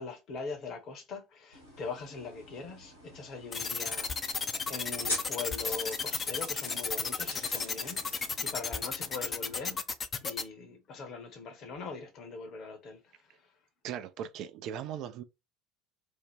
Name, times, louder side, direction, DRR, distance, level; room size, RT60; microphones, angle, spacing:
voice 1, 0.0-9.8 10.2-13.3, left 4 dB, 45° left, 0.8 m, -42 dB
sound 1, 1.5-9.8, left 1 dB, 85° left, 1.1 m, -45 dB
sound 2, 3.5-10.4, left 5 dB, 30° left, 0.4 m, -33 dB
voice 2, 13.8-15.2, right 9 dB, 50° right, 0.4 m, -38 dB
2.7 x 2.1 x 3.3 m
figure-of-eight pair, 65°, 0 cm